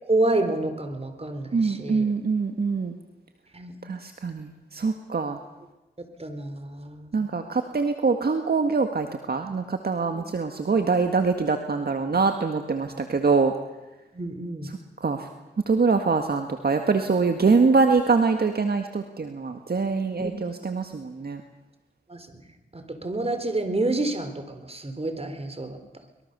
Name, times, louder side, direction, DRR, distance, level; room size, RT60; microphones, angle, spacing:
voice 1, 0.0-2.0 3.5-3.7 6.2-7.1 10.1-10.3 14.1-14.7 20.2-20.3 22.1-22.3 22.7-25.8, right 2 dB, 35° right, 8 dB, 4.3 m, -28 dB
voice 2, 1.5-2.9 3.8-5.4 7.1-13.5 14.6-14.7 15.0-15.3 15.7-21.4, right 4 dB, 60° right, 6 dB, 1.9 m, -24 dB
24.0 x 22.0 x 7.0 m, 1.0 s
cardioid pair, 45°, 18 cm